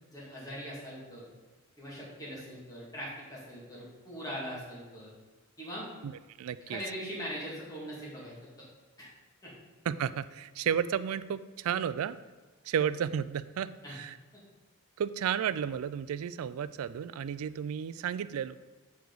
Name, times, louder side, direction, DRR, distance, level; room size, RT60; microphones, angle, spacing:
voice 1, 0.1-1.3 1.8-5.1 5.6-5.9 6.7-8.7 9.0-9.1 9.4-9.5 13.8-14.0, equal, 15° left, -7 dB, 2.2 m, -41 dB
voice 2, 6.4-6.8 9.9-12.2 12.6-14.2 15.0-18.6, right 8 dB, 80° right, 16 dB, 0.3 m, -32 dB
8.1 x 4.8 x 4.0 m, 1.3 s
head